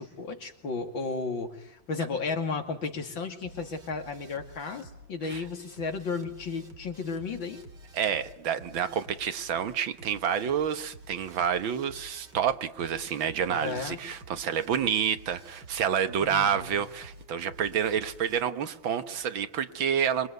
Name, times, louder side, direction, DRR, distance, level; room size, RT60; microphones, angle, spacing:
voice 1, 0.0-7.6 13.5-14.0 16.3-16.8, left 4 dB, 75° left, 4 dB, 3.2 m, -34 dB
sound 1, 3.4-18.4, right 1 dB, 60° right, 3.4 m, -50 dB
voice 2, 7.9-20.3, right 8 dB, 90° right, 10 dB, 2.1 m, -29 dB
26.5 x 23.0 x 9.4 m, 0.74 s
omnidirectional pair, 2.1 m